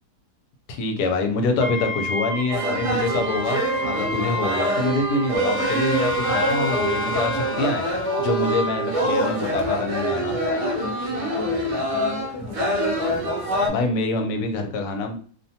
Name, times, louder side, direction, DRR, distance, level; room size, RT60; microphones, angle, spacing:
voice 1, 0.7-7.8 8.2-10.4 13.7-15.2, left 3 dB, 80° left, 4 dB, 1.1 m, -25 dB
Wind instrument woodwind instrument, 1.6-7.5, equal, 85° right, 1.2 m, -31 dB
sound 1, 2.5-13.7, right 1 dB, 70° right, 0.9 m, -25 dB
sound 2, 5.3-9.2, equal, 35° right, 0.7 m, -36 dB
voice 2, 10.1-13.3, left 3 dB, 55° left, 0 dB, 0.5 m, -36 dB
2.8 x 2.2 x 2.7 m, 0.44 s
omnidirectional pair, 1.7 m